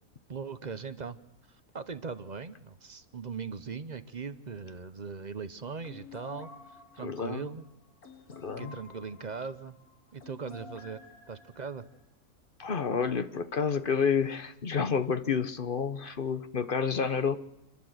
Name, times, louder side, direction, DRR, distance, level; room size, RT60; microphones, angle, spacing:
voice 1, 0.3-1.2 1.7-6.5 6.9-7.6 8.6-9.8 10.1-11.0 11.3-11.8, right 5 dB, 35° right, 12 dB, 0.8 m, -39 dB
sound 1, 5.8-12.0, left 3 dB, 75° left, 2.9 m, -52 dB
voice 2, 7.0-7.4 8.3-8.7 12.6-17.4, left 6 dB, 40° left, 12 dB, 1.0 m, -29 dB
29.5 x 11.5 x 7.9 m, 0.84 s
omnidirectional pair, 1.6 m